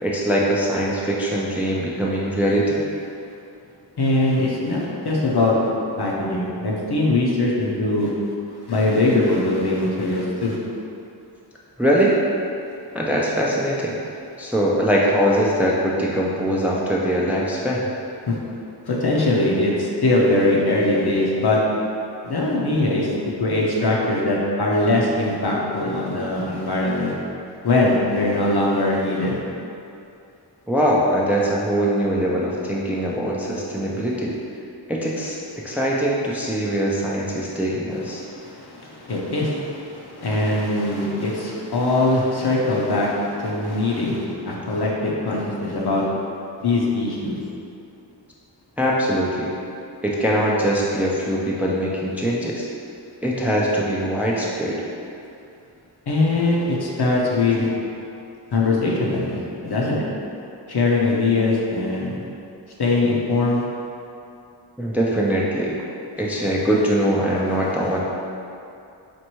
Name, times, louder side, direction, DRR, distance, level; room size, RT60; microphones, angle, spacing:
voice 1, 0.0-2.8 11.8-12.2 12.9-14.0 14.4-17.9 30.7-34.3 34.9-35.4 35.6-38.2 48.8-49.5 50.0-52.7 53.2-54.8 64.8-65.7 66.2-68.0, equal, 5° right, -4 dB, 0.4 m, -22 dB
voice 2, 4.0-5.6 6.0-8.1 8.7-10.6 18.3-18.4 18.8-21.6 22.2-23.1 23.4-27.1 27.6-29.4 38.2-46.1 46.6-47.4 56.1-57.7 58.5-60.1 60.7-62.2 62.8-63.6, left 2 dB, 60° left, -3 dB, 0.8 m, -21 dB
4.4 x 2.6 x 3.0 m, 2.7 s
cardioid pair, 40°, 44 cm